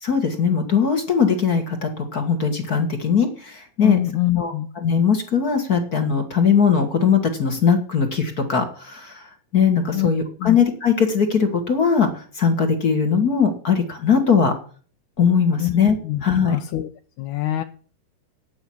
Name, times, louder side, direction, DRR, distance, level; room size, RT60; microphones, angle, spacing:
voice 1, 0.0-4.0 4.4-14.5 15.2-16.0 16.2-16.6, left 6 dB, 40° left, 6 dB, 1.5 m, -20 dB
voice 2, 3.8-4.7 9.9-10.1 10.4-10.6 15.6-15.7 16.0-16.9 17.2-17.6, left 16 dB, 75° left, 7 dB, 1.9 m, -24 dB
9.6 x 7.9 x 8.6 m, 0.41 s
omnidirectional pair, 3.9 m